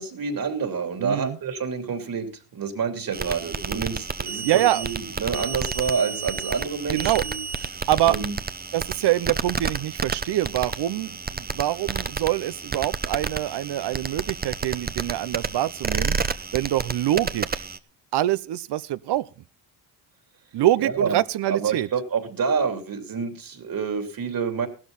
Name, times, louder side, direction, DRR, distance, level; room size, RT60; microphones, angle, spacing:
voice 1, 0.0-7.4 8.0-8.4 20.8-21.2 21.5-24.7, right 5 dB, 50° right, 3.0 m, -28 dB
voice 2, 1.0-1.4 4.4-4.8 6.9-7.2 7.9-8.1 8.7-17.6 18.1-19.3 20.5-21.9, right 13 dB, 70° right, 0.8 m, -25 dB
sound 1, 3.1-17.8, right 5 dB, 20° right, 0.7 m, -31 dB
15.5 x 12.5 x 4.0 m
cardioid pair, 80°, 42 cm